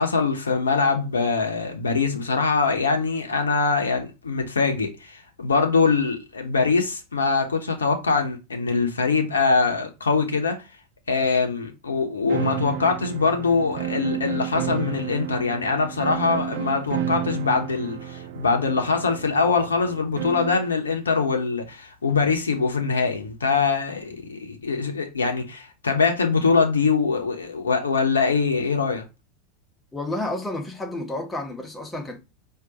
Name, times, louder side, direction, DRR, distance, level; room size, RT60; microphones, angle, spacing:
voice 1, 0.0-10.6 11.1-29.0, left 4 dB, 85° left, 0.8 m, -23 dB
sound 1, 12.3-20.7, right 10 dB, 65° right, 0.5 m, -32 dB
voice 2, 29.9-32.2, left 1 dB, 15° left, 1.2 m, -30 dB
4.7 x 2.5 x 3.8 m
hypercardioid pair, 90°, 0 cm